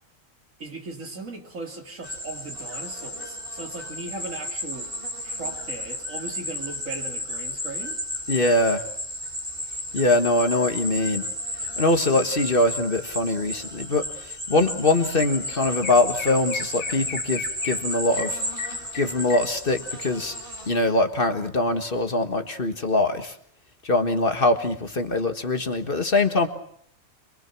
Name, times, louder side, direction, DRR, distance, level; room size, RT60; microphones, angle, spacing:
voice 1, 0.6-4.9 5.2-8.0, right 2 dB, 75° right, 3 dB, 3.3 m, -38 dB
sound 1, 2.0-20.7, left 1 dB, 40° right, 5.9 m, -33 dB
voice 2, 8.3-8.8 9.9-11.3 11.8-18.4 18.9-20.4 20.7-23.3 23.8-26.5, left 2 dB, 40° left, 7 dB, 1.8 m, -23 dB
Chirp tweet, 15.1-15.2 15.5-20.0, left 6 dB, 85° left, 1.9 m, -37 dB
25.5 x 22.5 x 6.1 m, 0.62 s
omnidirectional pair, 1.4 m